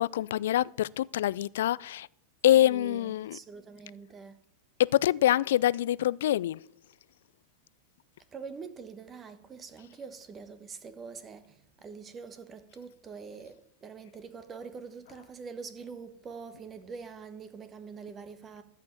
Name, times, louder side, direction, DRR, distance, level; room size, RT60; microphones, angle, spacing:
voice 1, 0.0-2.1 2.4-3.4 4.8-6.6, left 13 dB, 70° left, 0.3 m, -25 dB
voice 2, 2.5-4.4 8.3-18.6, right 5 dB, 25° right, 1.3 m, -44 dB
13.5 x 5.8 x 7.5 m
hypercardioid pair, 100°, 0 cm